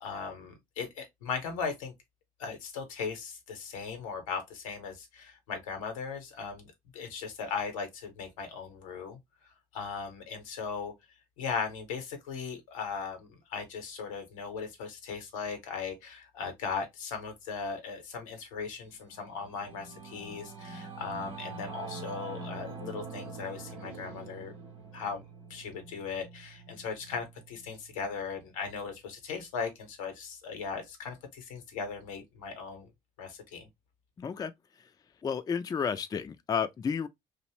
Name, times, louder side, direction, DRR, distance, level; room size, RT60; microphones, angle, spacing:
voice 1, 0.0-1.9 2.4-9.2 9.7-10.9 11.4-24.5 24.9-32.9 33.2-33.7, left 5 dB, 80° left, 0.7 m, -38 dB
Singing / Musical instrument, 18.9-28.6, right 4 dB, 85° right, 0.7 m, -45 dB
voice 2, 34.2-34.5 35.2-37.1, left 6 dB, 25° left, 0.3 m, -31 dB
2.5 x 2.0 x 2.9 m
hypercardioid pair, 50°, 17 cm